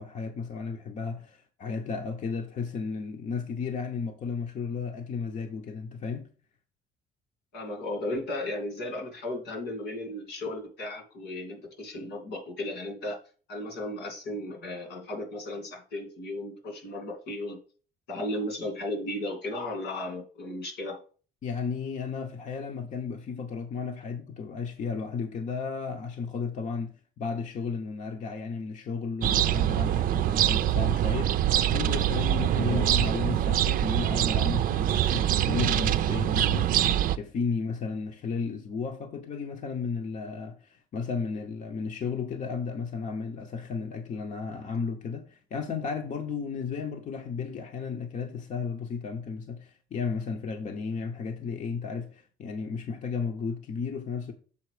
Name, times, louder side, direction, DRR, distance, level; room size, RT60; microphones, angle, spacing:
voice 1, 0.0-6.3 21.4-36.9 37.1-54.3, left 5 dB, 45° left, 0.8 m, -34 dB
voice 2, 7.5-13.2 13.5-17.6 18.1-21.0 32.6-32.9, left 1 dB, 80° left, 2.6 m, -35 dB
sound 1, 29.2-37.2, right 12 dB, 55° right, 0.5 m, -24 dB
7.2 x 4.2 x 4.8 m
cardioid pair, 110°, 17 cm